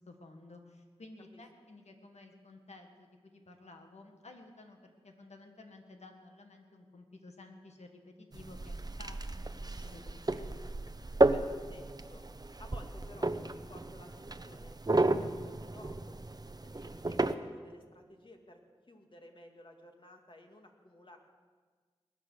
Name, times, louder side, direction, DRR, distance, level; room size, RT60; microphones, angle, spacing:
voice 1, 0.1-10.6, left 2 dB, 75° left, 4 dB, 1.7 m, -54 dB
sound 1, 8.3-17.3, right 2 dB, 35° right, 0.8 m, -33 dB
voice 2, 11.3-12.2 12.6-16.2 16.6-18.6 18.9-21.2, left 1 dB, 50° left, 3 dB, 2.2 m, -55 dB
21.0 x 10.0 x 6.5 m, 1.5 s
cardioid pair, 40°, 11 cm